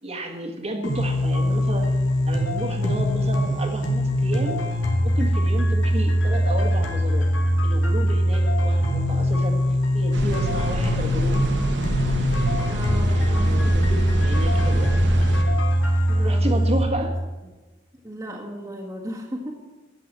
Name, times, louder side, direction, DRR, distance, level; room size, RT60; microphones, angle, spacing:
voice 1, 0.0-1.9 2.2-4.6 5.0-7.3 7.6-9.6 9.9-11.4 13.1-15.0 16.2-17.1, right 1 dB, 35° right, 3 dB, 1.7 m, -32 dB
sound 1, 0.8-16.8, equal, 80° left, 2.6 m, -22 dB
sound 2, 10.1-15.4, right 1 dB, 65° right, 1.8 m, -27 dB
voice 2, 12.7-13.9 16.0-16.5 16.9-17.0 18.0-19.5, equal, 15° right, -5 dB, 1.7 m, -36 dB
13.0 x 9.1 x 7.5 m, 1.2 s
head